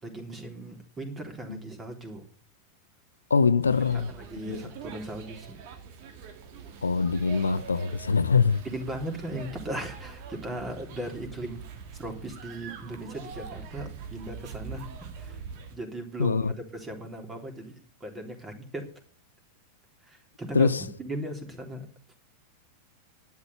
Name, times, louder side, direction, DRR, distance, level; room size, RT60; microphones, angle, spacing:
voice 1, 0.0-2.2 3.9-5.6 8.6-11.7 12.0-14.9 15.2-15.4 15.7-18.9 20.0-20.7 21.0-21.9, right 1 dB, 15° right, 3.5 m, -38 dB
voice 2, 3.3-4.1 4.5-4.6 6.8-8.6 16.2-16.5 20.5-20.8, left 5 dB, 75° left, 0.7 m, -23 dB
sound 1, 3.6-15.8, right 6 dB, 45° right, 2.1 m, -44 dB
12.0 x 9.7 x 7.0 m
figure-of-eight pair, 90°, 0 cm